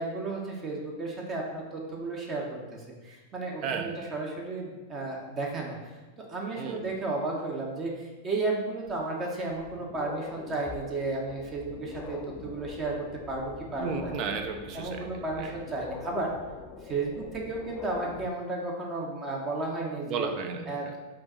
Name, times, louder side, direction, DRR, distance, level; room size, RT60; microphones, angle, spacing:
voice 1, 0.0-5.8 6.3-14.1 14.7-16.3 16.8-20.3 20.7-21.0, right 2 dB, 30° right, -1 dB, 1.0 m, -33 dB
voice 2, 3.6-4.0 6.6-6.8 13.8-15.5 20.1-21.0, right 5 dB, 45° right, 6 dB, 0.5 m, -34 dB
sound 1, 8.9-9.0 9.5-18.3, left 6 dB, 30° left, 0.4 m, -44 dB
4.4 x 2.5 x 4.2 m, 1.2 s
hypercardioid pair, 105°, 0 cm